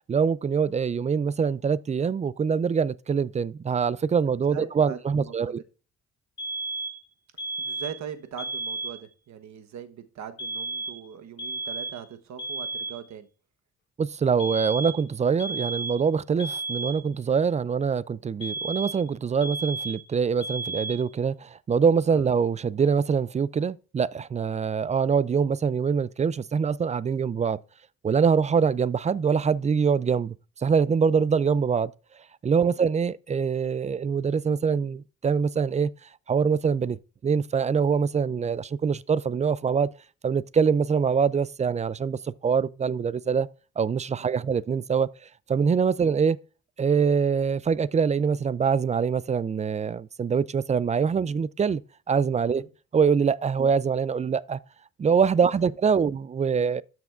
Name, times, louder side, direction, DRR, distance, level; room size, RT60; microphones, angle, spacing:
voice 1, 0.1-5.6 14.0-27.6 28.0-30.3 30.6-31.9 32.4-35.9 36.3-37.0 37.2-39.9 40.2-43.5 43.8-45.1 45.5-46.4 46.8-51.8 52.1-52.6 52.9-54.6 55.0-56.8, right 6 dB, 25° right, 0.3 m, -24 dB
voice 2, 4.5-5.5 7.6-13.3 22.1-22.3 32.6-32.8 44.2-44.5 52.5-52.7 55.4-56.1, right 8 dB, 70° right, 1.1 m, -41 dB
sound 1, 6.4-7.0 7.4-8.0 8.4-9.0 10.4-11.1 11.4-12.1 12.4-13.1 14.4-15.1 15.4-16.1 16.4-17.1 18.4-19.1 19.4-20.1 20.4-21.1, right 3 dB, 40° left, 3.3 m, -33 dB
13.0 x 6.0 x 2.5 m
cardioid pair, 90°, 30 cm